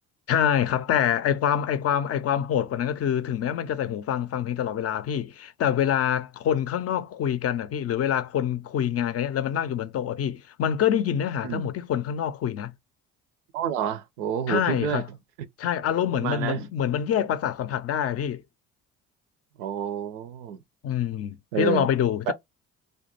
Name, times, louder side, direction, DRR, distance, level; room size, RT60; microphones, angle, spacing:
voice 1, 0.3-12.7 14.5-15.1 15.6-18.4 20.8-22.3, left 9 dB, 40° left, 0.5 m, -26 dB
voice 2, 13.5-15.0 16.1-16.6 19.6-20.6 21.5-21.9 22.3-22.4, right 9 dB, 80° right, 0.5 m, -28 dB
2.4 x 2.1 x 2.8 m
hypercardioid pair, 55°, 37 cm